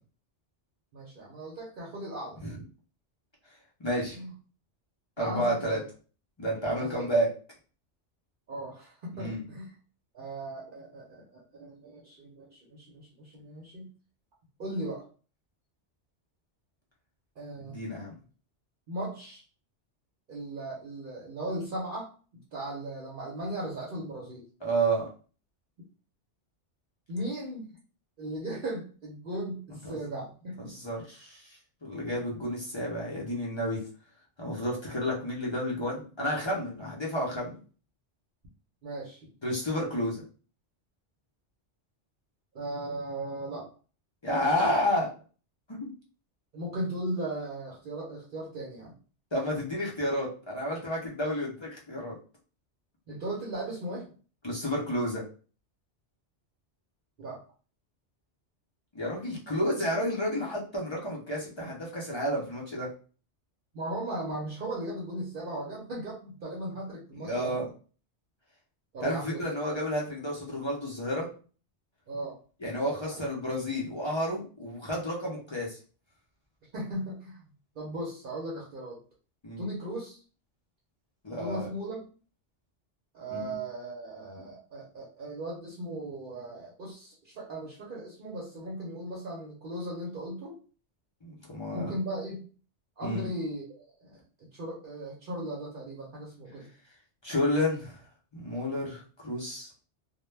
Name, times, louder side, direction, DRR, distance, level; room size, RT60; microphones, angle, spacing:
voice 1, 0.9-2.4 4.1-4.3 5.2-5.8 6.8-7.1 8.5-9.7 10.1-13.9 14.6-15.0 17.4-17.8 18.9-19.4 20.3-24.4 27.1-27.7 28.2-30.7 38.8-39.3 42.5-43.7 46.5-48.9 53.1-54.1 57.2-57.4 63.7-67.6 68.9-69.4 72.1-72.4 72.8-73.2 76.7-77.4 77.8-79.0 79.6-80.2 81.4-82.0 83.1-90.5 91.7-92.4 93.0-96.7, right 1 dB, 55° right, -4 dB, 0.7 m, -37 dB
voice 2, 3.8-4.2 5.2-5.8 6.4-7.3 9.2-9.4 17.6-18.1 24.6-25.1 29.8-30.0 30.6-31.5 31.8-33.8 34.4-37.5 39.4-40.2 44.2-45.1 45.7-45.9 49.3-52.1 54.4-55.2 58.9-62.9 67.2-67.7 69.0-71.3 72.6-75.8 79.4-79.6 81.2-81.7 83.3-83.5 91.2-92.0 93.0-93.3 97.2-98.0 98.3-99.7, equal, 35° left, -4 dB, 0.4 m, -31 dB
2.1 x 2.1 x 3.1 m, 0.39 s
omnidirectional pair, 1.2 m